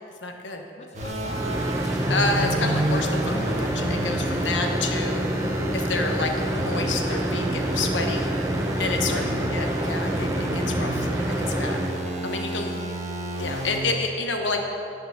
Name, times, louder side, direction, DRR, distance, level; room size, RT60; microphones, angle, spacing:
voice 1, 0.2-0.7 2.1-8.3 8.8-9.2 9.5-11.8 12.2-12.7 13.4-14.6, left 3 dB, 85° left, 3 dB, 1.1 m, -29 dB
voice 2, 0.8-1.5 9.1-9.7 12.6-13.3, left 2 dB, 35° left, 2 dB, 0.6 m, -44 dB
sound 1, 0.9-13.8, right 1 dB, 40° right, 1.4 m, -31 dB
sound 2, 1.2-11.9, right 1 dB, 15° right, 0.7 m, -27 dB
11.0 x 5.9 x 6.4 m, 2.8 s
head